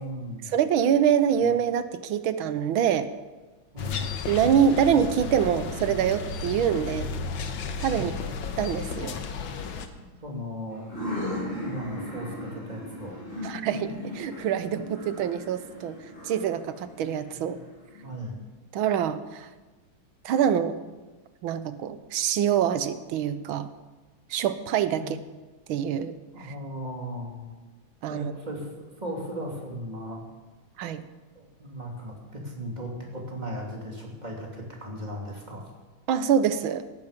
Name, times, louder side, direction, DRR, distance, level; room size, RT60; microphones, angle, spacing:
voice 1, 0.0-0.5 3.7-4.1 7.9-8.2 10.2-10.9 11.6-13.2 17.3-17.5 18.0-18.4 24.9-25.1 26.3-27.4 28.1-28.7 29.0-30.2 31.3-35.7, equal, 20° right, -1 dB, 3.1 m, -37 dB
voice 2, 0.5-3.1 4.3-7.1 7.8-8.1 8.6-9.1 13.4-16.0 16.2-17.6 18.7-19.5 20.2-20.8 21.4-23.7 24.3-25.2 25.7-26.1 26.4-26.5 28.0-28.3 30.8-31.0 36.1-36.8, right 8 dB, 75° right, 12 dB, 1.6 m, -25 dB
sound 1, 3.8-9.9, left 4 dB, 70° left, 1.9 m, -33 dB
sound 2, 10.7-18.3, left 1 dB, 35° left, 5.8 m, -37 dB
17.5 x 13.5 x 5.2 m, 1.2 s
omnidirectional pair, 2.3 m